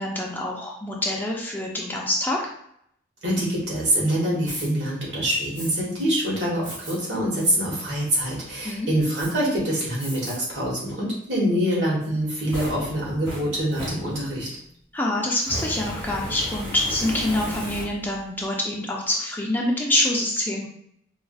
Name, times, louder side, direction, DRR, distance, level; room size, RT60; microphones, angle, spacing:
voice 1, 0.0-2.4 8.6-8.9 14.9-20.7, left 1 dB, 10° left, -2 dB, 0.4 m, -26 dB
voice 2, 3.2-14.5, equal, 70° right, -5 dB, 1.4 m, -25 dB
Fire, 4.4-4.7 5.5-5.7 6.6-7.0 7.4-7.5 8.0-8.5 9.2-9.3 10.0-10.4 10.8-10.9 12.0-14.5 15.4-18.2, equal, 20° right, 1.2 m, -35 dB
4.6 x 2.3 x 2.3 m, 0.71 s
head